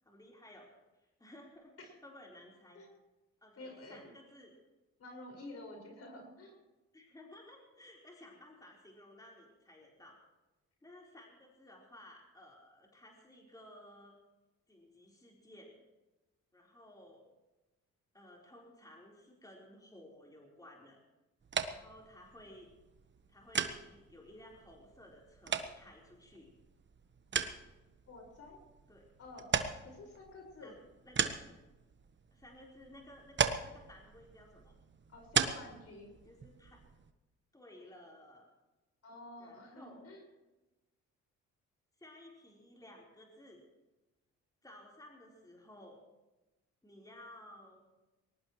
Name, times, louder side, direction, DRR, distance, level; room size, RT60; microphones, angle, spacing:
voice 1, 0.0-1.7 2.0-2.8 3.4-4.6 6.9-10.2 10.8-14.2 14.7-15.7 16.5-17.2 18.1-21.0 21.7-22.7 23.3-26.5 28.9-29.1 30.6-30.7 31.0-31.4 32.3-34.7 36.2-36.8 37.5-38.5 39.4-40.2 42.0-43.6 44.6-46.0 46.8-47.8, left 1 dB, 10° left, -2 dB, 4.2 m, -56 dB
voice 2, 3.6-4.1 5.0-6.6 28.1-28.6 29.2-29.6 29.8-30.7 35.1-36.1 39.0-40.2, left 2 dB, 55° left, 1 dB, 5.7 m, -50 dB
sound 1, 21.4-37.1, right 6 dB, 40° right, 1.2 m, -39 dB
21.5 x 18.5 x 3.2 m, 1.1 s
cardioid pair, 90°, 30 cm